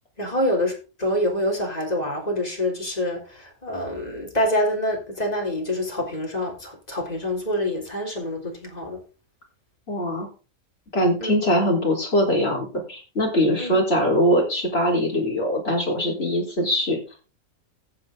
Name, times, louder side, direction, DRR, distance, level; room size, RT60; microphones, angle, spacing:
voice 1, 0.2-9.0 11.2-11.3 13.6-13.8, left 1 dB, 25° left, 3.8 m, -26 dB
voice 2, 9.9-10.3 10.9-17.0, equal, 45° left, 4.7 m, -22 dB
14.5 x 7.8 x 3.9 m
omnidirectional pair, 1.5 m